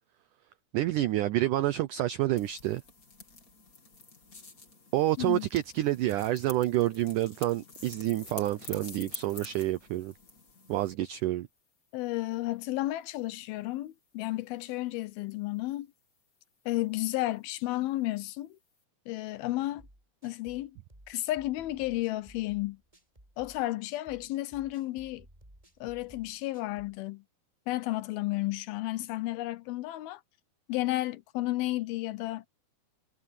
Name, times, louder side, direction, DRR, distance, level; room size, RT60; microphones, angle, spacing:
voice 1, 0.7-2.8 4.9-10.1 10.7-11.5, right 15 dB, 85° right, 1.8 m, -28 dB
sound 1, 2.4-11.0, left 4 dB, 25° left, 2.4 m, -48 dB
voice 2, 11.9-15.9 16.7-18.6 19.1-19.8 20.2-20.8 21.1-22.8 23.4-25.3 25.8-27.2 27.7-30.2 30.7-32.5, left 17 dB, 80° left, 2.5 m, -32 dB
sound 2, 19.8-27.0, right 1 dB, 10° right, 4.8 m, -56 dB
omnidirectional pair, 4.6 m